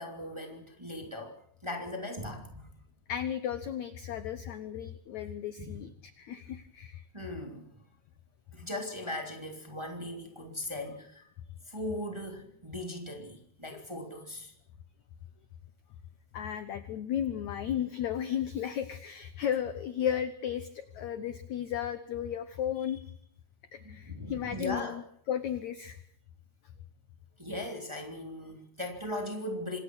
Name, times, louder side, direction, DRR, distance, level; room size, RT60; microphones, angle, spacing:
voice 1, 0.0-2.7 5.6-5.8 7.1-7.6 8.5-11.2 11.7-14.5 23.8-25.0 27.4-29.8, left 1 dB, 10° right, 2.2 m, -39 dB
voice 2, 3.1-5.9 6.2-7.0 16.3-23.0 23.7-26.0, left 9 dB, 75° left, 1.7 m, -34 dB
26.5 x 20.5 x 6.3 m
omnidirectional pair, 4.7 m